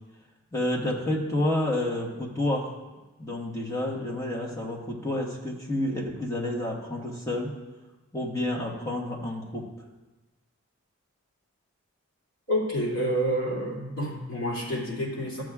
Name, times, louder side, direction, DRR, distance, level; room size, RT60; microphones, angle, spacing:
voice 1, 0.5-2.8 3.2-7.5 8.1-9.6, left 1 dB, 15° left, -3 dB, 1.3 m, -29 dB
voice 2, 12.5-15.4, equal, 65° left, -5 dB, 2.8 m, -28 dB
13.5 x 7.6 x 2.4 m, 1.1 s
head